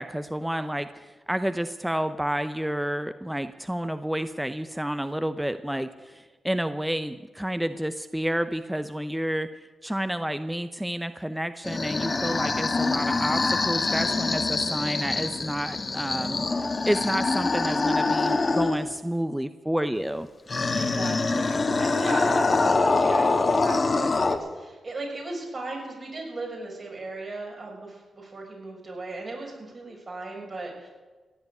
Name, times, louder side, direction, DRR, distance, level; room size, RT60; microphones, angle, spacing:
voice 1, 0.0-9.5 9.8-20.3, equal, 5° right, 11 dB, 0.8 m, -30 dB
sound 1, 11.6-18.9 20.5-24.4, left 3 dB, 40° left, 1.6 m, -25 dB
voice 2, 20.8-30.9, right 2 dB, 45° right, -1 dB, 6.7 m, -36 dB
16.5 x 8.0 x 9.5 m, 1.3 s
cardioid pair, 55°, 0 cm